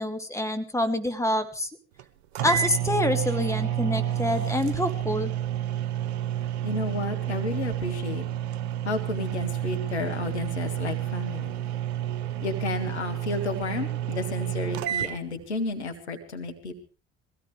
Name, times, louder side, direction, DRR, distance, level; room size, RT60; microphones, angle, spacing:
voice 1, 0.0-1.7 2.4-5.3, left 1 dB, 10° left, 9 dB, 2.9 m, -26 dB
sound 1, 2.0-2.1 2.4-15.2, right 12 dB, 70° right, 1.1 m, -30 dB
voice 2, 6.6-8.3 8.8-11.5 12.4-16.8, left 3 dB, 85° left, 5 dB, 1.9 m, -32 dB
23.0 x 16.5 x 3.4 m, 0.35 s
figure-of-eight pair, 55°, 33 cm